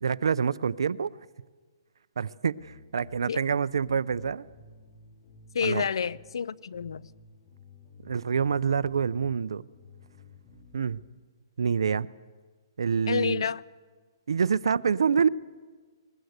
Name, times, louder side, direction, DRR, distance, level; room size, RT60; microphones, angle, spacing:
voice 1, 0.0-1.1 2.2-4.4 5.6-5.8 8.0-9.6 10.7-11.0 11.6-12.1 12.8-13.4 14.3-15.3, right 6 dB, 85° right, 0.6 m, -26 dB
sound 1, 2.5-11.1, left 3 dB, 45° left, 3.9 m, -53 dB
voice 2, 5.5-7.1 13.1-13.6, left 7 dB, 80° left, 0.6 m, -29 dB
21.0 x 19.5 x 8.0 m
hypercardioid pair, 155°, 3 cm